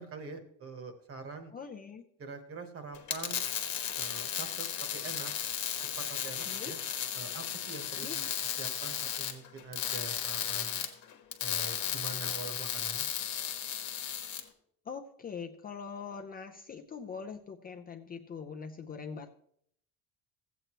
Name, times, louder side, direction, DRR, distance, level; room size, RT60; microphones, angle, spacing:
voice 1, 0.0-1.5 2.2-3.4 4.0-4.7 4.9-5.3 6.0-6.8 7.1-8.3 8.6-10.9 11.4-13.1, right 3 dB, 40° right, 8 dB, 1.2 m, -44 dB
voice 2, 1.5-2.0 6.5-6.7 7.9-8.2 14.9-19.3, left 6 dB, 25° left, 4 dB, 0.5 m, -42 dB
sound 1, 2.9-14.4, left 9 dB, 55° left, 1.2 m, -35 dB
14.5 x 8.1 x 3.0 m, 0.67 s
cardioid pair, 140°, 36 cm